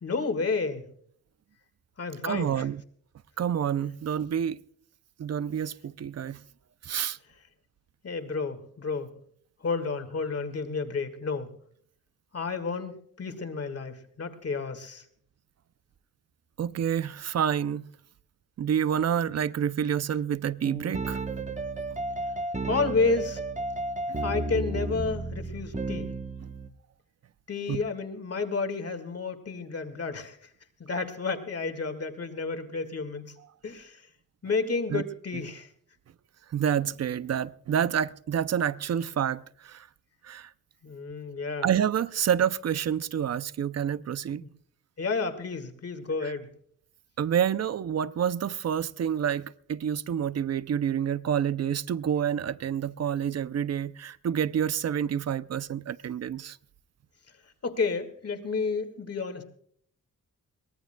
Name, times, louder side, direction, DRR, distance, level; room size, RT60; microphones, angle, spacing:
voice 1, 0.0-0.9 2.0-2.7 8.0-9.1 9.6-11.5 12.3-15.0 22.7-23.4 24.2-26.1 27.5-30.4 30.8-33.3 33.6-34.1 34.4-35.7 40.8-41.7 44.4-44.5 45.0-46.5 57.6-59.4, left 4 dB, 45° left, 1.8 m, -31 dB
voice 2, 2.2-2.8 3.4-4.6 5.2-6.4 6.8-7.2 16.6-17.9 18.6-21.2 24.1-24.2 27.7-27.8 34.9-35.0 36.5-39.9 40.2-40.5 41.6-44.4 46.2-46.3 47.2-56.6, right 9 dB, 50° right, 0.5 m, -28 dB
sound 1, 20.6-26.7, right 2 dB, 20° right, 1.0 m, -33 dB
23.0 x 18.5 x 2.2 m
wide cardioid pair, 125°, 34 cm